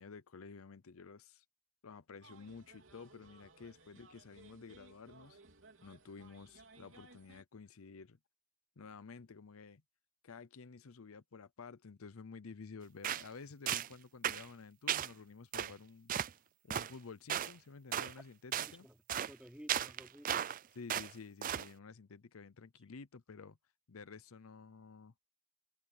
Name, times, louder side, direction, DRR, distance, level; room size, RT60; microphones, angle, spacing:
voice 1, 0.0-1.5 1.8-5.4 5.8-8.2 8.8-9.8 10.2-16.1 16.6-18.9 20.8-23.6 23.9-25.1, left 4 dB, 80° left, 0.7 m, -52 dB
sound 1, 2.2-7.4, right 3 dB, 60° right, 3.6 m, -61 dB
sound 2, 13.0-13.3 13.7-13.9 14.2-14.4 14.9-15.1 15.5-15.7 16.1-16.3 16.7-16.9 17.3-17.5 17.9-18.1 18.5-18.7 19.1-19.3 19.7-20.6 20.9-21.1 21.4-21.7, right 10 dB, 40° right, 0.4 m, -35 dB
voice 2, 18.5-20.6, equal, 5° right, 3.3 m, -56 dB
head